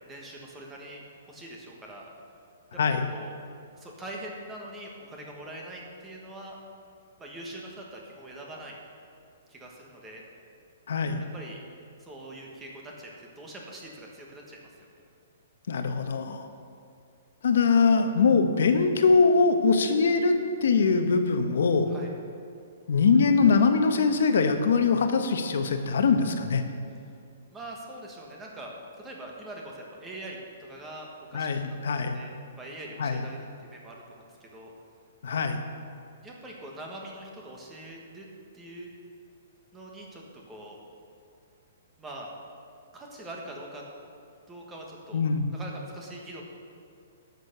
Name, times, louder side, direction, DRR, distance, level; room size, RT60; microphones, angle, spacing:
voice 1, 0.1-2.1 2.9-3.3 3.7-6.6 7.2-8.8 9.5-10.2 11.3-11.6 12.0-14.6 21.9-22.1 27.5-31.5 32.0-34.7 36.2-38.3 38.5-38.9 39.7-40.8 42.0-42.3 42.9-43.8 44.5-45.2 45.5-46.4, right 1 dB, 10° right, -1 dB, 1.4 m, -43 dB
voice 2, 10.9-11.2 15.7-16.5 17.4-21.9 22.9-26.6 31.3-32.2 33.0-33.2 35.2-35.6 45.1-45.5, left 4 dB, 70° left, 7 dB, 1.1 m, -22 dB
11.0 x 6.7 x 6.7 m, 2.4 s
hypercardioid pair, 165°, 0 cm